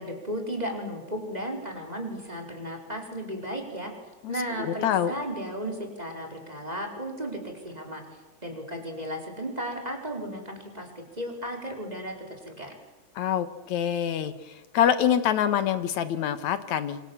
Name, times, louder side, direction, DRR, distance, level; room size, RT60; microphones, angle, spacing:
voice 1, 0.0-3.9 4.3-8.0 8.4-12.7, equal, 15° right, 2 dB, 4.6 m, -35 dB
voice 2, 4.2-5.1 13.2-17.0, left 9 dB, 75° left, 12 dB, 2.8 m, -26 dB
27.5 x 26.0 x 7.3 m, 1.1 s
omnidirectional pair, 3.3 m